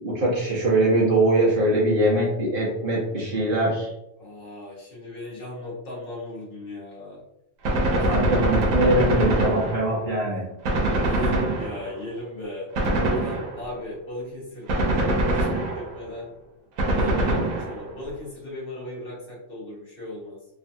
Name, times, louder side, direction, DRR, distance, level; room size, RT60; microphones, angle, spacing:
voice 1, 0.0-3.9 7.9-10.5, right 1 dB, 50° right, -5 dB, 0.8 m, -22 dB
voice 2, 4.2-7.2 7.9-8.4 11.0-16.3 16.9-20.4, left 1 dB, 50° left, -5 dB, 1.0 m, -37 dB
Gunshot gunfire, 7.6-10.1 10.7-12.1 12.8-13.8 14.7-16.1 16.8-18.0, right 1 dB, 90° right, 1.1 m, -24 dB
3.1 x 2.3 x 2.6 m, 0.82 s
omnidirectional pair, 1.4 m